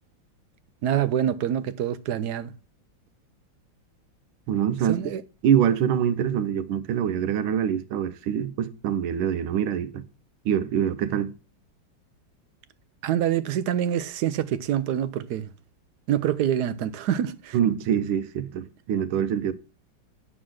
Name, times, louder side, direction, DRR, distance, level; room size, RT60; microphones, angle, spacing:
voice 1, 0.8-2.5 4.8-5.2 13.0-15.5 16.1-17.6, right 10 dB, 70° right, 1.0 m, -26 dB
voice 2, 4.5-5.1 5.4-10.0 10.4-11.3 17.5-19.5, right 9 dB, 85° right, 1.6 m, -25 dB
9.7 x 4.0 x 6.3 m
omnidirectional pair, 2.2 m